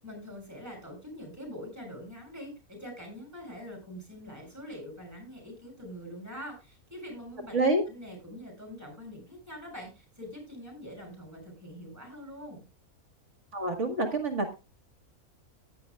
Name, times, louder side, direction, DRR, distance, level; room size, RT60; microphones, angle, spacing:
voice 1, 0.0-12.6, equal, 10° right, 1 dB, 7.4 m, -44 dB
voice 2, 13.5-14.6, right 2 dB, 50° right, 6 dB, 2.0 m, -27 dB
16.5 x 10.5 x 2.3 m, 0.29 s
omnidirectional pair, 1.6 m